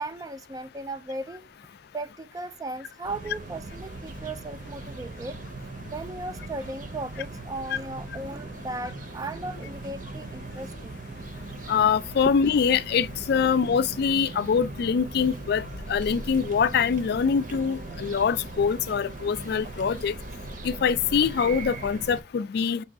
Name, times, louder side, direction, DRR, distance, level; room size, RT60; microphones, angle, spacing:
voice 1, 0.0-1.5 1.9-5.4 5.9-11.0, right 2 dB, 20° right, 0.3 m, -36 dB
sound 1, 3.0-22.2, right 2 dB, 50° right, 0.7 m, -39 dB
voice 2, 11.7-20.1 20.6-22.8, left 6 dB, 60° left, 0.3 m, -24 dB
5.3 x 2.3 x 3.6 m
head